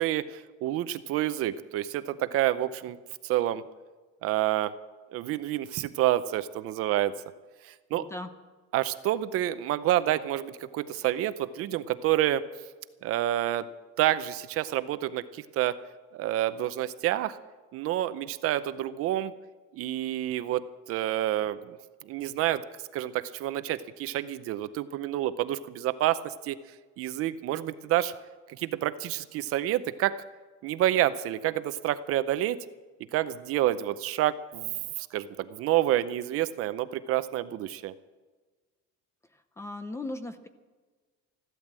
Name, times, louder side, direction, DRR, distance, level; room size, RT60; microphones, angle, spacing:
voice 1, 0.0-3.0 3.2-3.6 4.2-4.7 5.1-7.1 7.6-8.0 8.7-12.5 13.0-13.7 14.0-15.8 16.1-17.4 17.7-19.3 19.7-21.8 22.1-22.6 22.9-26.6 27.0-28.1 28.6-30.2 30.6-32.6 33.1-37.9, right 13 dB, 50° right, 13 dB, 0.6 m, -28 dB
voice 2, 7.9-8.3 39.3-40.5, left 2 dB, 10° left, 10 dB, 0.6 m, -38 dB
15.0 x 12.5 x 7.5 m, 1.3 s
cardioid pair, 180°, 30 cm